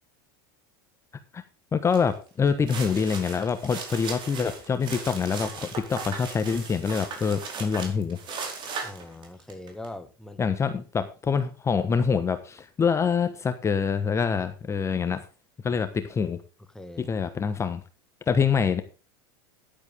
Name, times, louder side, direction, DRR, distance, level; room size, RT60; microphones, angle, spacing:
voice 1, 1.7-8.2 10.4-15.2 15.6-16.4 17.0-17.8 18.3-18.8, left 6 dB, 20° left, 10 dB, 1.2 m, -25 dB
sound 1, 1.9-2.1 2.5-9.9, right 5 dB, 40° right, 4.5 m, -37 dB
voice 2, 8.8-10.4 15.7-15.8 16.7-17.1, left 1 dB, 5° left, 9 dB, 1.4 m, -42 dB
11.0 x 10.0 x 3.6 m, 0.35 s
hypercardioid pair, 105°, 12 cm